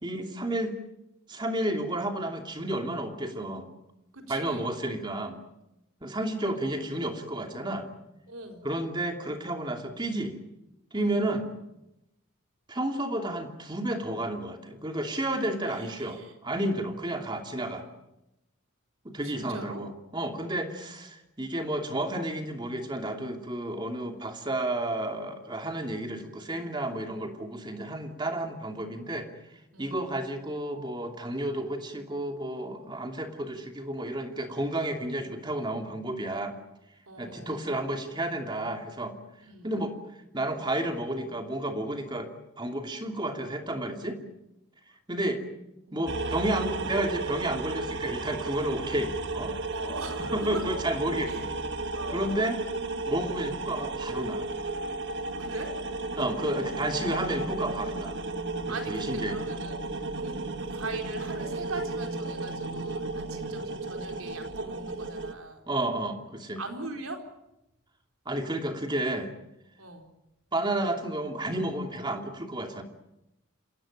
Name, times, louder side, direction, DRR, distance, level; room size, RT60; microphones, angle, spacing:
voice 1, 0.0-0.8 1.3-3.7 4.3-5.4 6.0-7.9 8.6-10.4 10.9-11.4 12.7-17.9 19.0-29.3 29.8-36.6 37.2-39.1 39.6-40.0 40.3-42.3 42.6-44.2 45.1-45.4 45.9-49.5 50.3-51.5 52.1-52.6 53.1-54.5 56.2-58.2 58.7-59.4 65.7-66.6 68.3-69.3 70.5-72.8, right 1 dB, 20° right, 4 dB, 2.8 m, -31 dB
voice 2, 4.1-4.7 6.5-6.6 8.3-8.7 10.9-11.2 15.7-16.4 19.2-19.8 29.7-30.0 37.1-37.6 39.4-39.8 45.9-46.1 49.7-50.6 51.2-51.5 51.9-52.4 55.4-55.7 58.7-60.4 60.7-65.6 66.6-67.2 69.8-70.1, right 2 dB, 75° right, 3 dB, 4.2 m, -41 dB
sound 1, 46.1-65.3, right 2 dB, 55° right, 1.8 m, -34 dB
29.0 x 16.5 x 9.0 m, 0.89 s
head